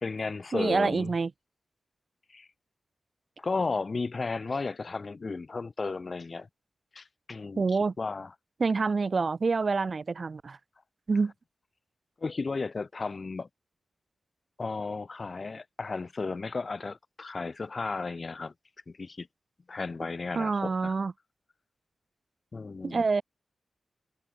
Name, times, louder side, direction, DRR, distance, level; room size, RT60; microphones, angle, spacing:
voice 1, 0.0-1.1 2.3-2.5 3.4-6.5 7.0-7.6 8.0-8.3 12.2-13.5 14.6-18.5 18.9-19.3 19.7-20.9 22.5-23.0, left 4 dB, 50° left, 1.8 m, -34 dB
voice 2, 0.5-1.3 7.6-7.9 8.6-10.6 11.1-11.3 20.3-21.1 22.8-23.2, right 4 dB, 55° right, 1.3 m, -27 dB
cardioid pair, 50°, 0 cm